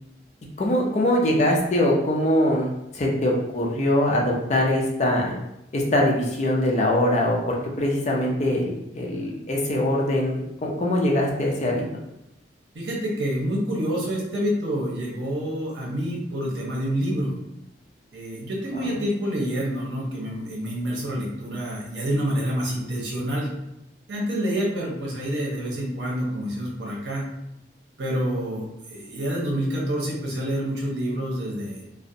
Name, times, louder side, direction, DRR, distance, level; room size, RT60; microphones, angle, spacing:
voice 1, 0.6-5.3 5.7-11.8 18.8-19.0, left 1 dB, 35° left, -1 dB, 0.4 m, -23 dB
voice 2, 12.7-17.3 18.1-23.5 24.1-27.2 28.0-31.8, equal, 80° right, -3 dB, 0.7 m, -27 dB
2.4 x 2.0 x 2.6 m, 0.86 s
head